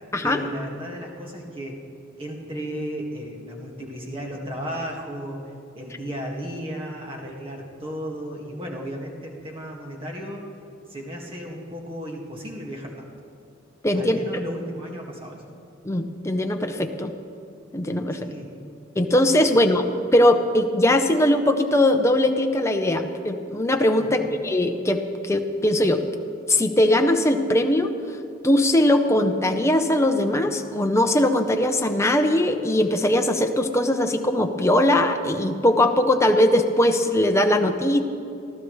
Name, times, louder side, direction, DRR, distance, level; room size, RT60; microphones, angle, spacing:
voice 1, 0.2-1.8 2.2-5.4 5.7-10.5 10.9-13.1 13.9-15.4 18.2-18.6 19.5-19.6 24.0-24.3, equal, 25° right, -1 dB, 1.8 m, -34 dB
voice 2, 13.8-14.2 15.8-17.1 17.7-18.2 19.0-19.9 20.1-26.0 26.5-27.9 28.4-38.0, left 1 dB, 15° left, 5 dB, 0.7 m, -20 dB
23.5 x 14.5 x 3.2 m, 2.6 s
head